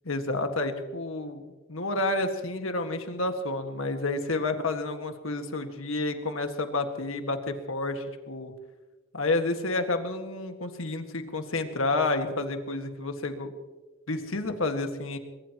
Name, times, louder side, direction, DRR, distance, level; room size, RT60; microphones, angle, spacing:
voice 1, 0.1-8.5 9.1-13.5 14.1-15.2, left 2 dB, 85° left, 6 dB, 1.9 m, -30 dB
22.5 x 21.5 x 3.0 m, 1.2 s
head